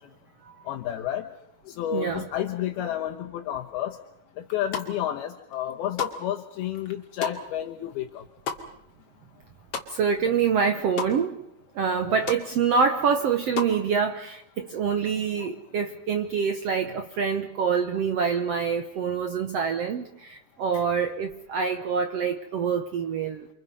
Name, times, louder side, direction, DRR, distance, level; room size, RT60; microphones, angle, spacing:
voice 1, 0.7-1.3 1.7-4.0 4.5-8.2 12.1-12.3 15.4-15.5 16.9-17.0 20.7-20.8, left 11 dB, 75° left, 3.0 m, -31 dB
voice 2, 1.9-2.2 9.9-11.4 11.7-23.5, right 6 dB, 85° right, 1.4 m, -26 dB
sound 1, 4.4-5.2 5.5-10.3 10.5-11.1 11.6-11.7 11.9-12.4 12.8-13.8, left 6 dB, 40° left, 2.9 m, -34 dB
29.5 x 25.0 x 5.5 m
omnidirectional pair, 4.6 m